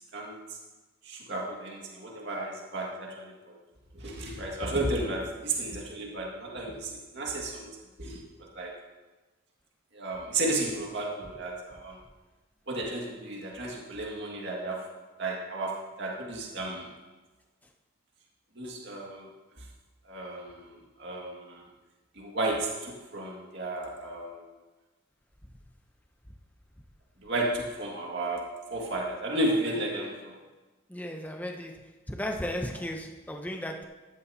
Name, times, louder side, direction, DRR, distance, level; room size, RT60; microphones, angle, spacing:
voice 1, 1.0-3.5 3.9-7.7 8.0-8.2 8.5-8.7 9.9-12.0 12.7-14.9 15.2-16.9 18.6-19.3 20.1-20.7 21.0-21.6 22.2-24.4 27.2-30.4, right 2 dB, 50° right, 2.2 m, -33 dB
voice 2, 30.9-33.8, equal, 5° left, 0.7 m, -35 dB
15.0 x 12.5 x 2.9 m
head